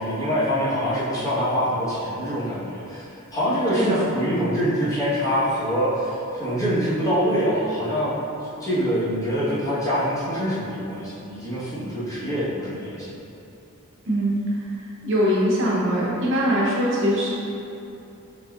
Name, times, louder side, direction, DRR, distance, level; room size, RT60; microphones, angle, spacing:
voice 1, 0.0-8.2 8.6-13.2, equal, 15° left, -11 dB, 1.3 m, -25 dB
voice 2, 3.7-4.1 14.1-14.3 15.0-17.3, equal, 60° right, -6 dB, 0.9 m, -22 dB
6.5 x 3.2 x 2.5 m, 2.8 s
head